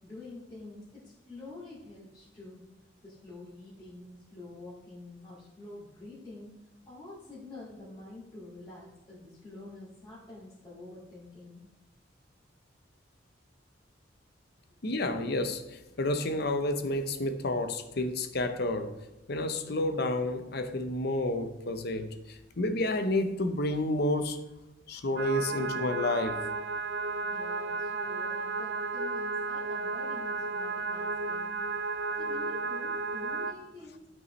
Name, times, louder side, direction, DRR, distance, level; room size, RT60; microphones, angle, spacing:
voice 1, 0.0-2.7 3.0-11.7 14.7-14.8 27.2-31.6 32.1-34.1, left 2 dB, 25° left, -11 dB, 2.2 m, -47 dB
voice 2, 14.8-19.0 19.3-24.4 24.9-26.4, left 2 dB, 55° left, 9 dB, 0.7 m, -30 dB
sound 1, 25.2-33.5, right 3 dB, 65° right, 0.4 m, -33 dB
12.0 x 5.4 x 3.2 m, 0.97 s
head